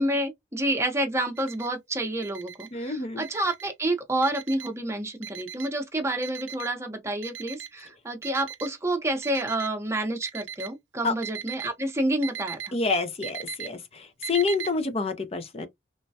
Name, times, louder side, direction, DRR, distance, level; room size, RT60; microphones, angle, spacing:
voice 1, 0.0-12.8, right 1 dB, 15° right, 0.7 m, -29 dB
Alarm, 1.4-1.7 2.2-2.7 3.2-3.7 4.2-4.7 5.2-5.7 6.2-6.7 7.2-7.7 8.2-8.7 9.2-9.7 10.2-10.7 11.2-11.7 12.2-12.7 13.2-13.7 14.2-14.7, right 9 dB, 80° right, 0.6 m, -38 dB
voice 2, 2.7-3.2 11.0-11.1 12.7-15.7, left 4 dB, 30° left, 0.5 m, -28 dB
3.1 x 2.2 x 2.6 m
head